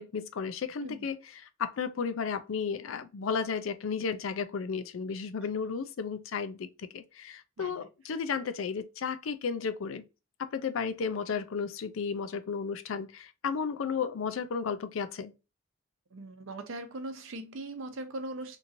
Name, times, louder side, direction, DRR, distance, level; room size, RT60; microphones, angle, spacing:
voice 1, 0.0-10.0 10.4-15.3, left 6 dB, 80° left, 0.4 m, -33 dB
voice 2, 16.1-18.6, right 2 dB, 80° right, 0.7 m, -40 dB
3.0 x 2.7 x 2.6 m
head